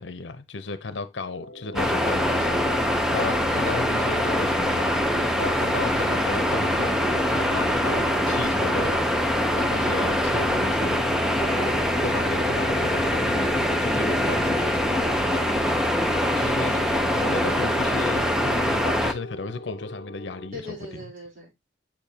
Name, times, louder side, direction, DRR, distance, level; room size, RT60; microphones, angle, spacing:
voice 1, 0.0-15.4 16.3-21.0, left 3 dB, 85° left, 0.7 m, -35 dB
sound 1, 1.2-20.5, left 1 dB, 50° left, 0.9 m, -40 dB
sound 2, 1.7-19.1, equal, 5° right, 0.7 m, -23 dB
voice 2, 15.4-15.8 20.5-21.7, equal, 45° right, 3.9 m, -41 dB
7.5 x 7.0 x 2.9 m
head